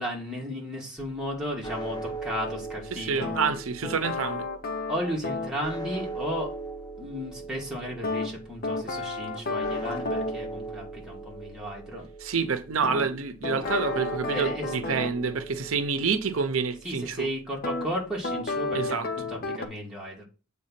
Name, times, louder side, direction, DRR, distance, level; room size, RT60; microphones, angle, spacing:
voice 1, 0.0-3.3 4.9-6.5 7.0-12.1 14.3-14.7 16.8-20.2, equal, 5° right, 2.2 m, -34 dB
sound 1, 1.0-19.4, right 2 dB, 20° left, 0.6 m, -40 dB
voice 2, 2.9-4.5 12.2-17.3 18.7-19.1, right 5 dB, 85° right, 0.7 m, -28 dB
sound 2, 3.2-5.6 8.0-10.4 12.8-15.2 17.6-17.9 18.2-19.7, left 3 dB, 45° left, 0.9 m, -32 dB
7.5 x 3.7 x 5.8 m
head